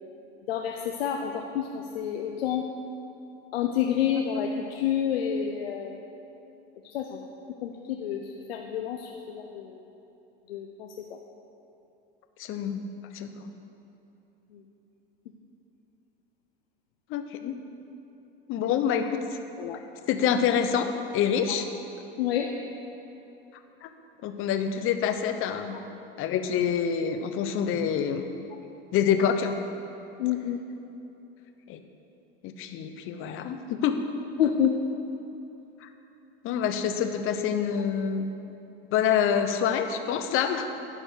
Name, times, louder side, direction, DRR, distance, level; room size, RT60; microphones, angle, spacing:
voice 1, 0.5-2.7 3.5-6.0 6.8-7.2 7.6-9.8 10.5-11.2 14.5-14.6 19.6-19.8 22.2-22.5 30.2-30.6 34.4-34.7, left 9 dB, 80° left, 2 dB, 0.8 m, -29 dB
voice 2, 12.4-12.8 13.1-13.5 17.1-17.5 18.5-19.4 20.1-21.7 23.8-23.9 24.2-25.8 26.2-28.2 28.9-29.6 31.7-31.8 32.4-33.9 35.8-35.9 36.4-38.3 38.9-40.7, left 8 dB, 45° left, 7 dB, 0.9 m, -26 dB
12.0 x 4.3 x 8.1 m, 3.0 s
hypercardioid pair, 100°, 30 cm